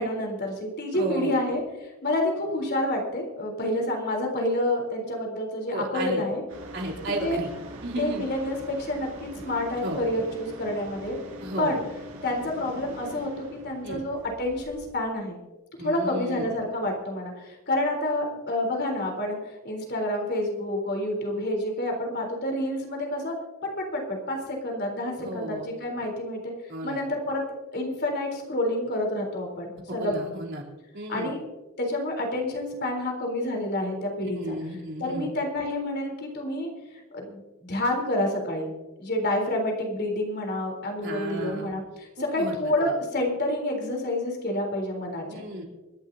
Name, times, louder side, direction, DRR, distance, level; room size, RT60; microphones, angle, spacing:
voice 1, 0.0-6.4 7.2-7.4 8.0-11.2 11.6-11.8 12.2-15.4 15.8-19.4 19.6-23.3 23.6-26.5 26.8-27.4 27.7-30.2 31.1-31.4 31.8-34.6 35.0-36.7 37.1-38.7 39.0-45.2, left 1 dB, 50° left, 1 dB, 3.8 m, -28 dB
voice 2, 1.0-1.3 5.7-6.2 6.7-7.5 7.8-8.2 9.8-10.0 11.4-11.8 13.8-14.0 15.8-16.5 25.2-25.7 26.7-27.0 30.0-30.6 30.9-31.3 34.4-35.3 41.0-41.7 42.2-42.7 45.3-45.7, right 1 dB, 55° right, -1 dB, 3.7 m, -33 dB
sound 1, 6.5-14.8, equal, 70° right, 5.8 m, -43 dB
27.0 x 11.5 x 2.8 m, 1.1 s
head